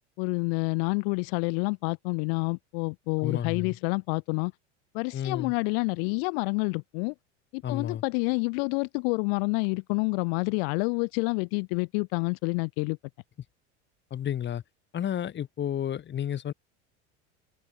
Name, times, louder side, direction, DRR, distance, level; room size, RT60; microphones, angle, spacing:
voice 1, 0.2-4.5 4.9-7.1 7.5-13.0, left 36 dB, 60° left, 0.5 m, -28 dB
voice 2, 3.2-3.8 5.1-5.5 7.6-8.0 14.1-14.6 14.9-16.5, left 10 dB, 30° left, 1.4 m, -31 dB
open air
hypercardioid pair, 90°, 34 cm